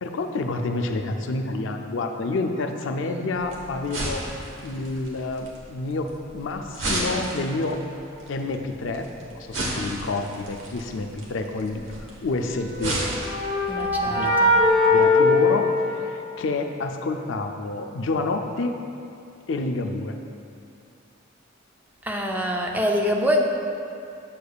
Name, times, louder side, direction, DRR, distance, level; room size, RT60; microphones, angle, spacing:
voice 1, 0.0-4.2 4.6-6.1 6.3-7.8 8.3-9.1 9.3-11.8 12.2-13.0 14.0-14.3 14.9-18.7 19.5-20.1, left 2 dB, 65° left, 5 dB, 0.4 m, -28 dB
sound 1, 3.3-15.1, right 1 dB, 70° right, 1.1 m, -34 dB
sound 2, 12.6-16.5, left 2 dB, 45° left, 1.1 m, -21 dB
voice 2, 13.7-14.5 22.0-23.4, equal, 10° right, 0 dB, 0.4 m, -25 dB
7.6 x 6.7 x 2.3 m, 2.6 s
head